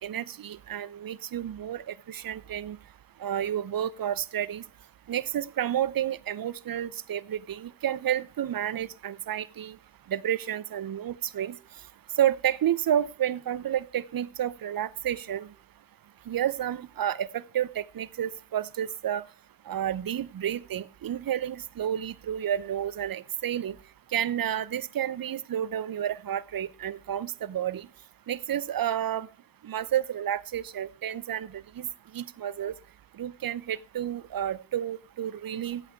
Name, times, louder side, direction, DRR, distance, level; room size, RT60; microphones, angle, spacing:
voice 1, 0.0-2.8 3.2-4.6 5.1-9.8 10.1-11.6 12.2-15.5 16.3-19.2 19.7-23.8 24.1-27.9 28.3-29.3 29.6-31.9 32.1-32.7 33.2-35.8, right 10 dB, 50° right, 0.7 m, -30 dB
14.0 x 8.6 x 4.5 m
supercardioid pair, 40°, 45 cm